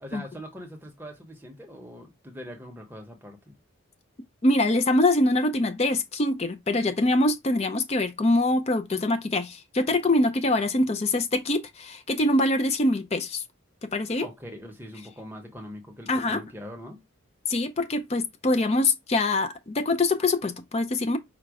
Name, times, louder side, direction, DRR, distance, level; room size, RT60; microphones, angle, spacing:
voice 1, 0.0-3.5 14.2-17.0, equal, 10° right, 0.8 m, -42 dB
voice 2, 4.4-13.4 13.8-14.3 16.1-16.4 17.5-21.2, left 2 dB, 30° left, 0.5 m, -24 dB
5.0 x 2.1 x 4.7 m
head